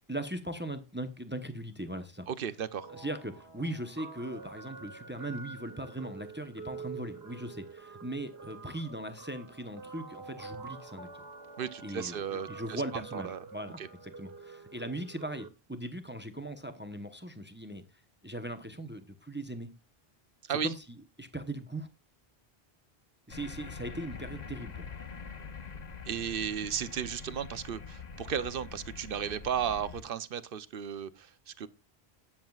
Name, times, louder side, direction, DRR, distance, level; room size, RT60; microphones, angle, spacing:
voice 1, 0.1-2.3 2.9-11.1 11.8-12.2 12.5-13.8 14.2-17.8 18.2-19.7 20.5-20.8 21.2-21.9 23.3-24.9, right 1 dB, 10° right, 0.8 m, -39 dB
voice 2, 2.3-2.9 11.6-13.4 13.8-13.9 20.4-20.7 26.0-31.7, right 8 dB, 65° right, 0.8 m, -35 dB
Guitar, 2.8-15.5, right 4 dB, 80° right, 1.5 m, -47 dB
sound 1, 23.3-30.0, left 5 dB, 45° left, 1.0 m, -44 dB
18.5 x 7.3 x 2.4 m
omnidirectional pair, 1.0 m